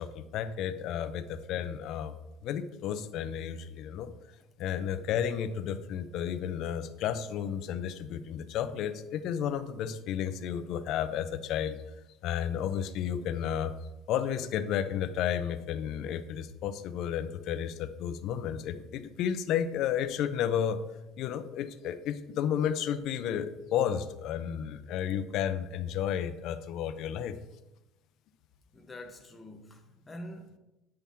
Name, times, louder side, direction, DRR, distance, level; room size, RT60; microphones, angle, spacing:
voice 1, 0.0-2.1 2.4-4.1 4.6-11.8 12.2-13.7 14.1-20.8 21.2-27.4, left 9 dB, 50° left, 0.6 m, -32 dB
voice 2, 28.7-30.6, left 1 dB, 10° left, 0.9 m, -45 dB
8.7 x 5.8 x 3.6 m
cardioid pair, 150°, 0 cm